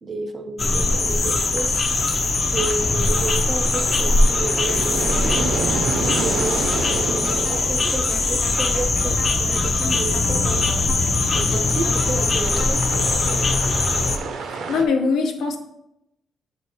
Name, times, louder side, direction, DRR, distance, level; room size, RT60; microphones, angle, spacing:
voice 1, 0.0-1.8 2.4-10.7 11.4-13.6, right 3 dB, 30° right, 9 dB, 0.5 m, -32 dB
sound 1, 0.6-14.2, left 3 dB, 30° left, 0.6 m, -21 dB
sound 2, 0.9-14.8, right 4 dB, 75° right, 0.7 m, -31 dB
sound 3, 4.5-13.0, left 2 dB, 55° left, 1.0 m, -38 dB
voice 2, 14.7-15.6, left 4 dB, 85° left, 4 dB, 0.9 m, -21 dB
8.4 x 3.4 x 4.1 m, 0.84 s
cardioid pair, 150°, 0 cm